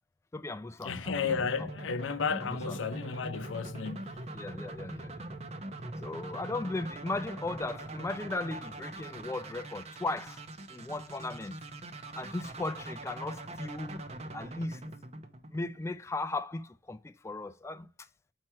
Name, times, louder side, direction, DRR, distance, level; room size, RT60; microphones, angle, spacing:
voice 1, 0.3-1.7 2.4-2.8 4.3-5.3 6.0-10.4 10.7-11.5 12.2-14.0 14.3-14.8 15.5-17.9, left 2 dB, 15° left, 0.3 m, -37 dB
voice 2, 0.8-4.1, left 5 dB, 90° left, 0.6 m, -33 dB
sound 1, 1.1-16.0, right 2 dB, 35° right, 0.7 m, -43 dB
6.1 x 4.4 x 4.5 m
head